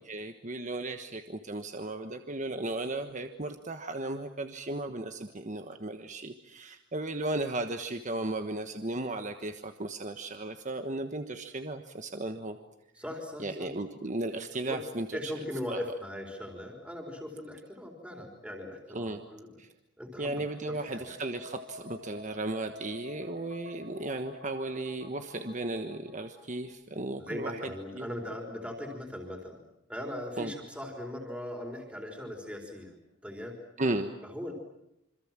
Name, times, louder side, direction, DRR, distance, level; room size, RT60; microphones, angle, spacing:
voice 1, 0.1-12.6 13.4-15.3 15.7-15.8 18.9-19.2 19.6-19.7 20.2-28.1 30.4-30.5 33.8-34.1, right 2 dB, 40° right, 7 dB, 1.3 m, -35 dB
voice 2, 13.0-13.7 14.7-14.8 15.1-19.6 20.0-20.4 20.7-21.1 27.3-29.6 29.9-33.0 33.2-33.6 34.2-34.5, left 1 dB, 5° right, 1 dB, 4.1 m, -39 dB
sound 1, 20.3-26.7, left 1 dB, 80° right, 6.2 m, -49 dB
27.5 x 25.5 x 7.5 m, 0.85 s
head